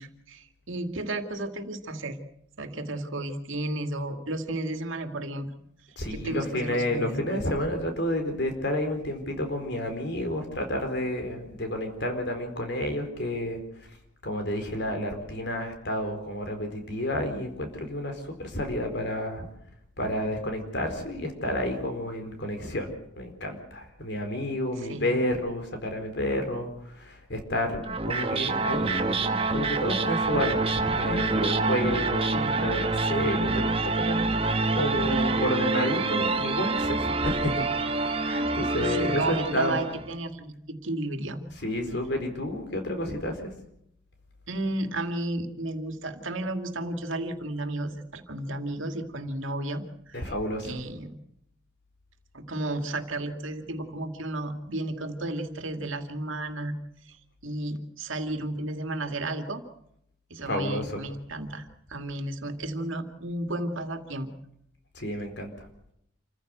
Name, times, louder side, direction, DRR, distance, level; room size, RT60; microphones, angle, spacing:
voice 1, 0.0-2.2 2.6-5.5 6.1-7.4 24.8-25.1 32.3-32.5 38.8-41.4 44.5-50.3 50.6-51.1 52.3-56.7 57.1-57.2 57.4-59.6 60.3-64.3, right 1 dB, 75° right, 7 dB, 2.3 m, -33 dB
voice 2, 6.0-13.6 14.2-19.4 20.0-39.8 41.6-43.4 50.1-50.7 60.4-61.0 64.9-65.7, left 1 dB, 55° left, 5 dB, 4.4 m, -30 dB
sound 1, 27.8-40.1, right 3 dB, 25° right, 1.2 m, -27 dB
27.5 x 15.0 x 8.0 m, 0.75 s
head